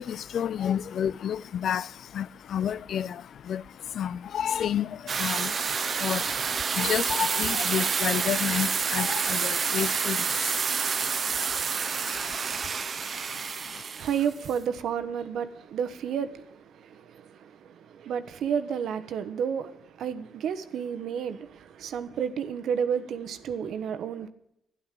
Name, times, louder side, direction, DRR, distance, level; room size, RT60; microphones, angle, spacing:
voice 1, 0.0-13.8, left 9 dB, 65° left, 0.5 m, -32 dB
sound 1, 5.1-14.5, right 6 dB, 45° right, 1.0 m, -28 dB
voice 2, 13.7-24.3, right 7 dB, 75° right, 1.2 m, -31 dB
12.5 x 11.0 x 7.5 m
cardioid pair, 90°, 0 cm